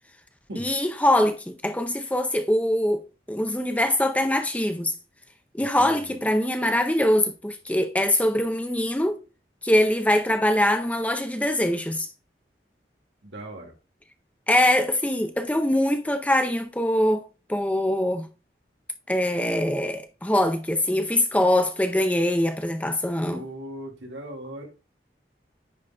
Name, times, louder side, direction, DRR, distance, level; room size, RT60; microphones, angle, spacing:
voice 1, 0.6-3.0 3.3-4.9 5.5-9.2 9.6-12.1 14.5-17.2 17.5-18.3 19.1-23.4, left 1 dB, 10° left, 0.6 m, -23 dB
voice 2, 5.6-6.2 13.2-13.7 23.3-24.7, right 1 dB, 90° right, 2.1 m, -39 dB
9.9 x 4.1 x 2.3 m
head